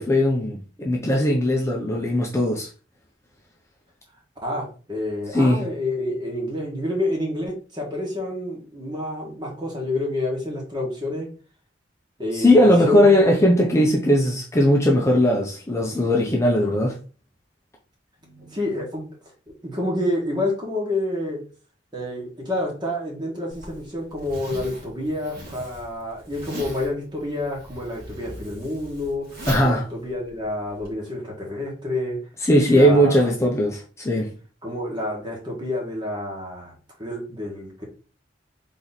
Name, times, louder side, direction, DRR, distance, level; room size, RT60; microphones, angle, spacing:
voice 1, 0.0-2.7 5.3-5.6 12.3-17.0 29.5-29.9 32.4-34.3, left 1 dB, 15° left, 0.7 m, -19 dB
voice 2, 4.4-11.3 12.2-13.3 18.2-19.1 19.6-21.4 21.9-32.2 32.7-33.3 34.6-36.7 37.0-37.8, left 1 dB, 25° right, 1.7 m, -28 dB
Zipper (clothing), 23.5-30.9, right 1 dB, 55° right, 2.3 m, -38 dB
4.0 x 3.1 x 4.0 m
head